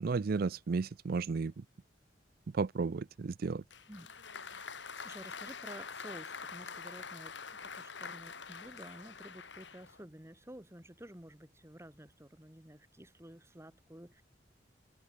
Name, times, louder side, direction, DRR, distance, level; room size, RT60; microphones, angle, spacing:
voice 1, 0.0-1.6 2.5-3.6, right 4 dB, 55° right, 0.4 m, -33 dB
Applause, 3.7-10.0, left 5 dB, 75° left, 3.8 m, -46 dB
voice 2, 4.4-4.8 5.0-14.2, right 1 dB, 15° right, 2.4 m, -52 dB
open air
head